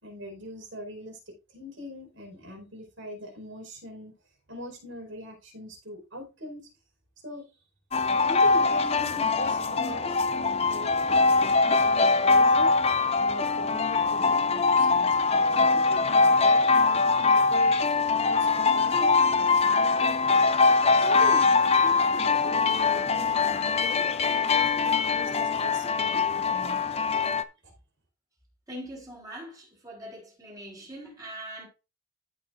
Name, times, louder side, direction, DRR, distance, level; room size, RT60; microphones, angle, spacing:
voice 1, 0.0-1.2 1.5-4.1 4.5-6.7 7.2-7.5 8.2-12.7 13.2-17.8 18.2-20.2 21.0-26.8 27.6-27.7, equal, 70° right, 4.8 m, -41 dB
sound 1, 7.9-27.4, left 4 dB, 30° left, 0.5 m, -23 dB
voice 2, 28.7-31.7, right 1 dB, 20° right, 4.1 m, -42 dB
14.5 x 5.9 x 2.6 m
head